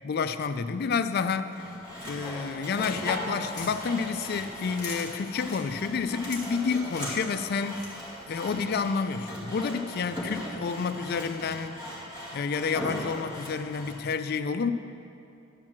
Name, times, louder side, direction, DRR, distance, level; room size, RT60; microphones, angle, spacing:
voice 1, 0.0-1.6 2.1-7.8 8.3-11.8 12.3-14.7, left 5 dB, 50° left, 11 dB, 0.4 m, -29 dB
Sawing, 1.5-14.0, left 1 dB, 25° right, 2.2 m, -38 dB
sound 1, 3.2-8.3, left 2 dB, 20° left, 1.8 m, -45 dB
11.0 x 4.5 x 7.3 m, 2.7 s
head